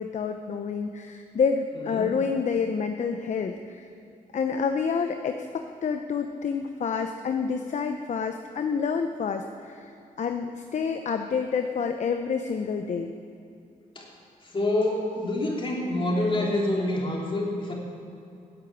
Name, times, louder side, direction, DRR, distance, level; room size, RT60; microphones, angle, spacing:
voice 1, 0.0-3.8 4.3-9.9 10.2-13.1, left 6 dB, 55° left, 6 dB, 0.7 m, -28 dB
voice 2, 14.5-17.7, left 1 dB, 35° left, -2 dB, 3.2 m, -26 dB
9.7 x 8.3 x 8.8 m, 2.7 s
cardioid pair, 75°, 15 cm